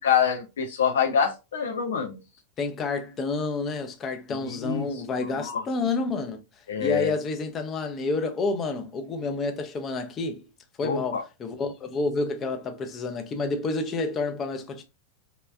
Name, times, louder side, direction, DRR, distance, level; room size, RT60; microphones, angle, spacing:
voice 1, 0.0-2.2 4.5-4.9 5.4-5.6 6.7-7.1 10.8-11.2, left 7 dB, 65° left, 0.4 m, -25 dB
voice 2, 2.6-6.4 6.8-10.5 10.8-14.8, left 3 dB, 25° left, 0.6 m, -29 dB
3.4 x 2.1 x 2.2 m
figure-of-eight pair, 90°, 0 cm